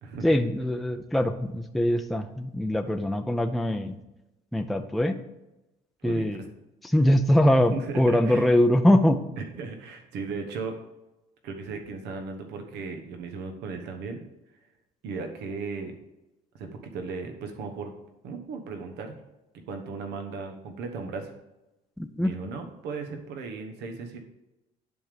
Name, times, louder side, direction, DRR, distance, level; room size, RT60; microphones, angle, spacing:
voice 1, 0.2-3.9 4.5-5.2 6.0-6.4 6.8-9.2 22.0-22.3, left 1 dB, ahead, 6 dB, 0.5 m, -22 dB
voice 2, 6.0-6.5 7.7-8.5 9.4-10.8 11.4-14.2 15.0-16.0 16.5-17.9 18.2-19.1 19.7-21.3 22.2-24.2, right 4 dB, 85° right, 5 dB, 1.1 m, -36 dB
10.5 x 3.6 x 5.0 m, 0.97 s
cardioid pair, 110°, 17 cm